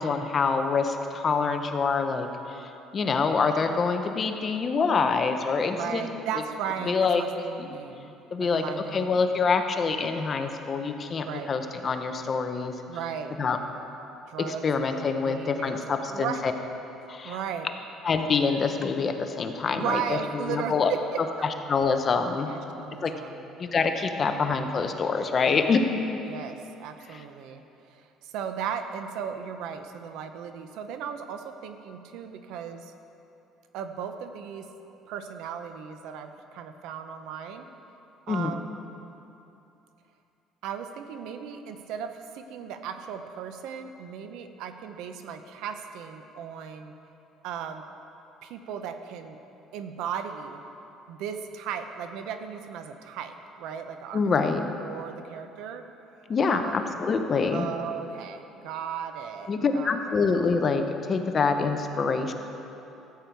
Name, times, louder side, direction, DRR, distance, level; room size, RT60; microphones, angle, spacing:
voice 1, 0.0-6.1 6.9-7.2 7.6-7.7 8.3-8.6 8.9-12.7 13.4-13.6 14.5-16.5 17.1-17.4 18.0-20.9 21.4-22.5 23.0-23.1 23.6-25.9 27.1-27.2 38.3-38.5 54.1-54.6 56.3-57.7 59.5-62.3, left 5 dB, 30° left, 6 dB, 0.8 m, -26 dB
voice 2, 5.7-9.3 11.2-11.5 12.9-13.3 14.3-16.4 17.0-17.7 19.8-21.2 22.5-23.5 24.2-24.5 25.4-25.7 26.2-27.6 27.9-32.9 33.7-34.7 35.1-37.7 38.3-38.6 40.6-46.9 47.4-47.8 48.4-49.4 49.7-50.6 51.1-54.5 54.8-55.8 56.5-57.0 57.5-60.0, right 7 dB, 75° right, 8 dB, 0.7 m, -36 dB
14.0 x 8.5 x 4.6 m, 2.9 s
cardioid pair, 135°, 0 cm